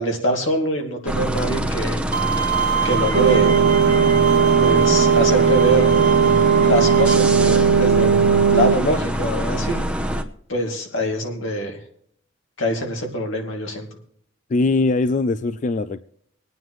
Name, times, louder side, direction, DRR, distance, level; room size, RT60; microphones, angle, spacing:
voice 1, 0.0-2.0 2.8-3.5 4.6-6.1 6.6-9.8 10.5-11.8 12.6-13.9, equal, 85° left, 2 dB, 2.4 m, -24 dB
sound 1, 1.1-10.2, right 1 dB, 5° right, 0.7 m, -25 dB
Bowed string instrument, 2.1-7.1, right 7 dB, 45° right, 0.9 m, -25 dB
sound 2, 3.1-8.8, right 7 dB, 80° right, 0.6 m, -17 dB
voice 2, 14.5-16.0, left 3 dB, 40° left, 12 dB, 0.4 m, -21 dB
24.5 x 9.3 x 3.1 m, 0.66 s
head